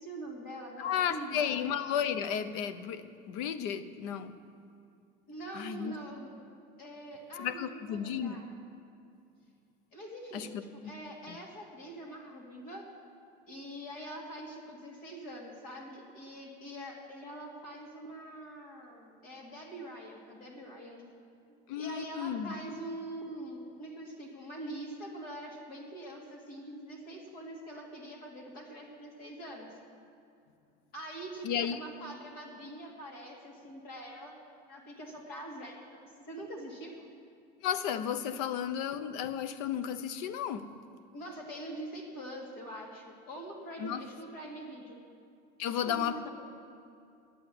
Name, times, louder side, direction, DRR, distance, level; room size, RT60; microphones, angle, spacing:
voice 1, 0.0-1.6 5.3-6.4 6.8-8.4 9.9-10.6 10.8-12.8 13.5-21.0 21.8-29.7 30.9-34.4 34.7-37.1 41.1-45.0 45.6-46.3, right 1 dB, 40° left, -1 dB, 2.4 m, -44 dB
voice 2, 0.8-4.4 5.5-5.9 7.4-8.4 10.3-10.9 11.3-11.4 21.7-22.5 31.4-31.8 37.6-40.7 43.8-44.0 45.6-46.3, left 9 dB, 70° left, 12 dB, 0.7 m, -33 dB
9.9 x 8.5 x 8.4 m, 2.5 s
cardioid pair, 170°, 21 cm